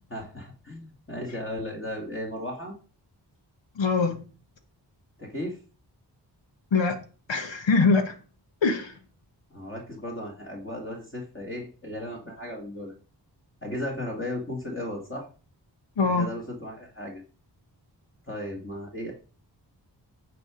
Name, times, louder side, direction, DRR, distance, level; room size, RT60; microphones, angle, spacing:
voice 1, 0.1-2.8 5.2-5.6 9.5-12.9 13.6-15.3 16.0-17.2 18.3-19.1, left 1 dB, 30° left, 2.1 m, -35 dB
voice 2, 3.8-4.2 6.7-7.0 7.3-8.1 8.6-8.9 16.0-16.3, left 4 dB, 85° left, 1.2 m, -23 dB
9.0 x 5.0 x 5.0 m
wide cardioid pair, 70°, 43 cm